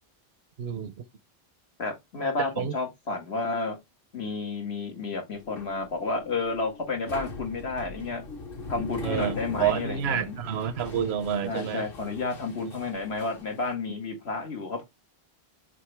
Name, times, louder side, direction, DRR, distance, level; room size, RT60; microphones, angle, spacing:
voice 1, 0.6-0.9 2.6-2.7 9.0-11.8, right 8 dB, 85° right, 0.9 m, -29 dB
voice 2, 1.8-3.8 4.1-8.3 8.7-10.4 11.4-14.8, left 3 dB, 85° left, 2.0 m, -31 dB
sound 1, 5.3-13.7, left 2 dB, 65° left, 1.4 m, -41 dB
6.5 x 5.1 x 3.3 m
omnidirectional pair, 1.0 m